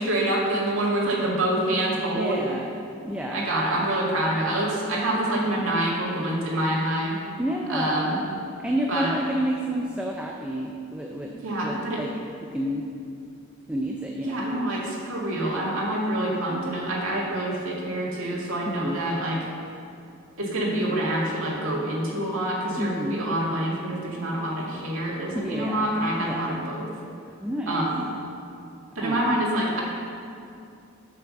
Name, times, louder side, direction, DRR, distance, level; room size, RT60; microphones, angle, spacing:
voice 1, 0.0-2.4 3.3-7.2 7.7-8.2 8.9-9.1 11.4-12.0 14.2-19.4 20.4-26.9 27.7-28.0 29.0-29.8, right 1 dB, 65° right, -4 dB, 2.2 m, -26 dB
voice 2, 2.2-2.8 3.0-3.5 7.4-8.3 8.6-12.1 12.4-12.9 13.7-14.5 18.7-19.0 22.8-23.2 25.3-26.5 27.4-27.8 29.0-29.4, equal, 5° right, 0 dB, 0.5 m, -30 dB
8.0 x 7.0 x 6.6 m, 2.5 s
head